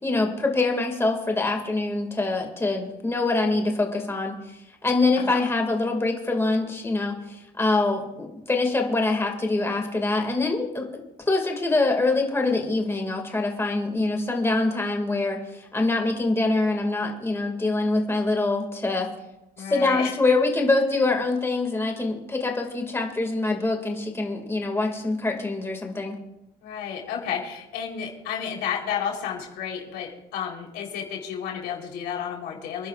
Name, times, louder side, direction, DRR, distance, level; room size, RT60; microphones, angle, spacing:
voice 1, 0.0-19.1 19.6-26.2, left 2 dB, 15° left, 2 dB, 2.1 m, -24 dB
voice 2, 19.6-20.2 26.6-32.9, left 8 dB, 90° left, 0 dB, 3.7 m, -32 dB
27.5 x 11.0 x 2.4 m, 0.93 s
cardioid pair, 110°, 17 cm